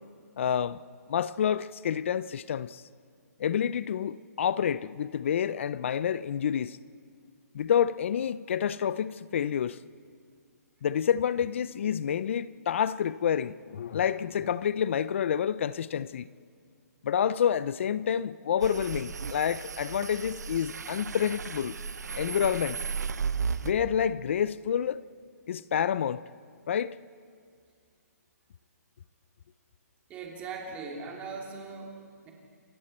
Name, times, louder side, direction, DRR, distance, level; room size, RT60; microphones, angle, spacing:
voice 1, 0.4-0.8 1.1-2.8 3.4-6.8 7.5-9.8 10.8-16.3 17.0-21.8 22.2-22.8 23.6-25.0 25.5-26.2 26.7-27.0, left 8 dB, 45° left, 0.5 m, -28 dB
sound 1, 18.6-23.7, right 6 dB, 90° right, 0.9 m, -35 dB
voice 2, 30.1-32.3, right 4 dB, 15° right, 2.8 m, -40 dB
28.0 x 23.5 x 4.3 m
hypercardioid pair, 160°, 9 cm